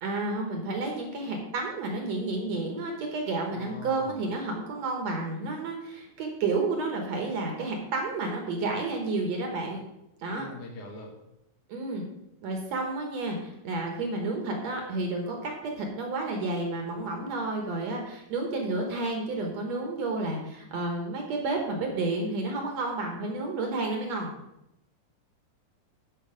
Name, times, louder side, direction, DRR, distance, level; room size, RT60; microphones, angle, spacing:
voice 1, 0.0-9.8 10.2-10.5 11.7-12.0 12.4-24.3, right 3 dB, 60° right, 2 dB, 2.2 m, -31 dB
voice 2, 3.5-4.1 10.3-11.2, left 3 dB, 65° left, 1 dB, 2.7 m, -42 dB
11.0 x 5.4 x 5.1 m, 0.86 s
omnidirectional pair, 3.9 m